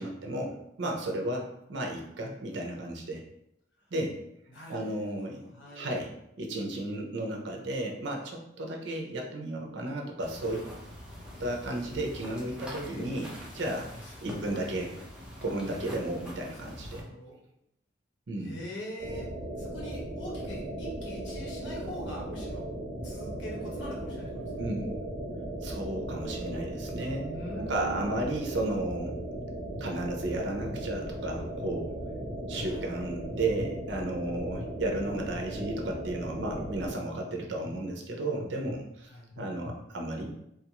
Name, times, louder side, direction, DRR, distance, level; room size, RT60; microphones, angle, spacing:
voice 1, 0.0-3.2 3.9-4.2 4.7-5.4 5.7-6.1 6.4-10.7 11.4-13.9 14.2-14.9 15.4-17.0 18.3-18.6 24.6-25.0 25.6-29.2 29.8-32.0 32.5-39.1 39.4-40.4, right 1 dB, 70° right, 1 dB, 0.6 m, -33 dB
voice 2, 4.5-6.0 13.9-14.1 16.9-17.4 18.4-19.3 19.6-22.7 23.0-24.5 27.3-28.2 32.6-32.8 36.8-37.1 39.1-39.3, equal, 75° left, -4 dB, 1.1 m, -43 dB
sound 1, 10.2-17.0, left 1 dB, 5° right, 0.7 m, -44 dB
sound 2, 19.0-36.9, right 1 dB, 25° right, 1.1 m, -37 dB
sound 3, 29.4-29.8 30.4-30.8 31.3-31.8 32.3-32.7 33.3-33.7 34.3-34.7 35.3-35.7 36.4-36.7 37.4-37.7 38.4-38.7 39.3-39.7, left 2 dB, 45° left, 0.5 m, -43 dB
3.1 x 2.4 x 2.9 m, 0.80 s
head